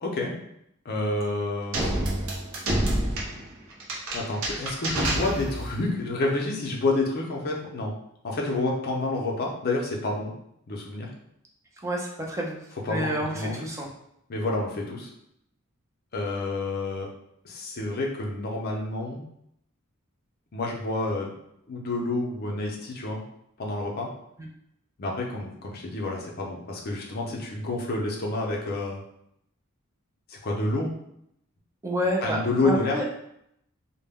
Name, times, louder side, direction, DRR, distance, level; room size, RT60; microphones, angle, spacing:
voice 1, 0.0-0.3 0.8-1.8 4.1-7.9 8.2-10.3 10.7-11.1 12.9-13.1 13.3-13.7 14.3-15.1 16.1-17.1 17.4-19.2 20.5-21.4 21.7-23.2 23.6-24.1 25.0-29.0 30.3-30.9 32.2-33.0, left 2 dB, 45° left, -1 dB, 0.5 m, -29 dB
sound 1, 1.7-5.8, right 1 dB, 65° right, 0.6 m, -28 dB
voice 2, 11.8-12.6 12.9-13.9 24.4-24.5 31.8-33.0, equal, 15° right, -1 dB, 0.4 m, -29 dB
2.1 x 2.1 x 3.4 m, 0.76 s
head